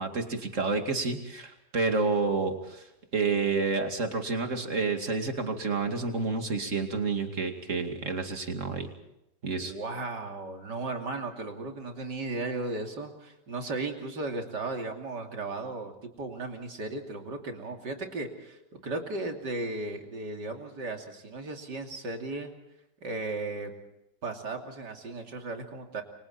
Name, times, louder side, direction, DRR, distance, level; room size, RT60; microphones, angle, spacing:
voice 1, 0.0-2.9 3.1-8.9 9.4-9.7, right 4 dB, 45° right, 5 dB, 2.8 m, -29 dB
voice 2, 9.6-22.5 23.0-23.7 24.2-26.0, right 2 dB, 85° right, 3 dB, 3.4 m, -36 dB
29.0 x 24.5 x 4.3 m, 0.86 s
omnidirectional pair, 1.8 m